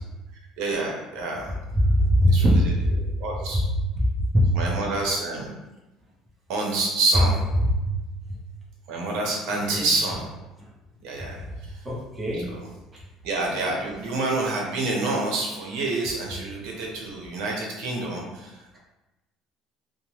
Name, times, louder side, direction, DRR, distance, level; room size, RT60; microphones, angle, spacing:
voice 1, 0.6-1.5 2.3-2.5 3.2-3.6 4.5-5.5 6.5-7.4 8.9-10.3 11.0-11.4 11.6-11.8 12.3-12.6 13.2-18.8, right 2 dB, 75° right, -1 dB, 0.7 m, -27 dB
voice 2, 1.8-3.0 3.5-3.6 4.0-4.5 7.6-7.9 8.3-8.4 9.7-9.9 10.6-10.7 11.2-11.5 11.8-12.5 12.9-13.0, equal, 10° right, -4 dB, 0.5 m, -22 dB
2.9 x 2.1 x 2.9 m, 1.0 s
cardioid pair, 160°, 0 cm